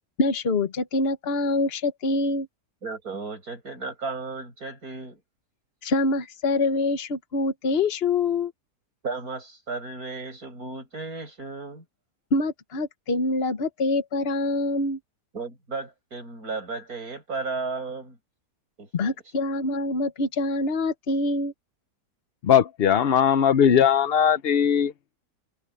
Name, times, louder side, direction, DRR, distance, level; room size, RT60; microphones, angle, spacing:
voice 1, 0.2-2.5 5.8-8.5 12.3-15.0 18.9-21.5, left 2 dB, 40° left, 1.5 m, -25 dB
voice 2, 2.8-5.2 9.0-11.8 15.3-18.2 18.8-19.1, right 3 dB, 60° right, 8.5 m, -34 dB
voice 3, 22.4-24.9, left 8 dB, 60° left, 0.6 m, -19 dB
open air
omnidirectional pair, 1.8 m